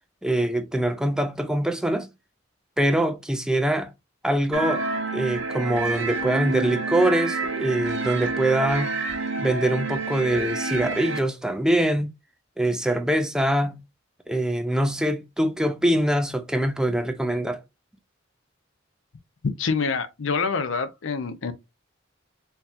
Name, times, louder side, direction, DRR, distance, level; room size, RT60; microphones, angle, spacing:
voice 1, 0.2-2.1 2.8-3.9 4.2-4.8 5.1-9.0 9.4-12.1 12.6-13.8 14.3-17.6, right 1 dB, 5° right, 0.4 m, -23 dB
sound 1, 4.5-11.2, right 3 dB, 85° right, 0.9 m, -28 dB
voice 2, 19.6-21.5, left 5 dB, 80° left, 0.5 m, -26 dB
4.3 x 2.7 x 2.4 m
head